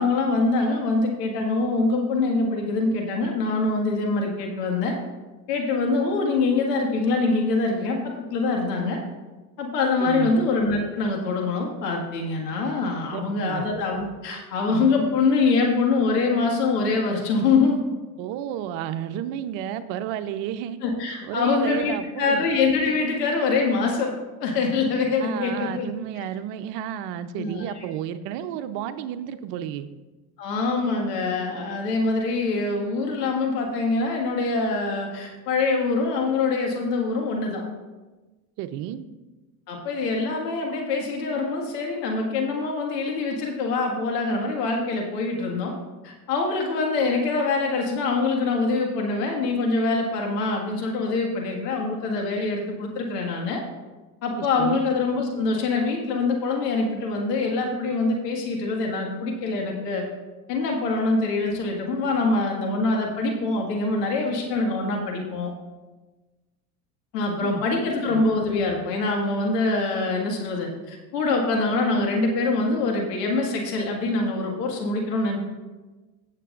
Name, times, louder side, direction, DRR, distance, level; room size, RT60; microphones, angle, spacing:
voice 1, 0.0-4.9 5.5-8.0 8.3-9.0 9.6-17.8 20.8-24.1 24.4-25.9 26.2-26.3 27.4-27.8 30.4-37.6 39.7-45.7 46.0-53.6 54.2-60.0 60.5-65.5 67.1-75.4, left 3 dB, 85° left, 1 dB, 2.0 m, -24 dB
voice 2, 10.0-10.3 13.1-13.7 18.2-20.8 21.2-22.4 25.2-29.9 38.6-39.1 54.3-54.8 67.4-67.6 68.1-68.2, right 10 dB, 65° right, 9 dB, 0.9 m, -32 dB
16.0 x 7.7 x 2.6 m, 1.2 s
hypercardioid pair, 80°, 47 cm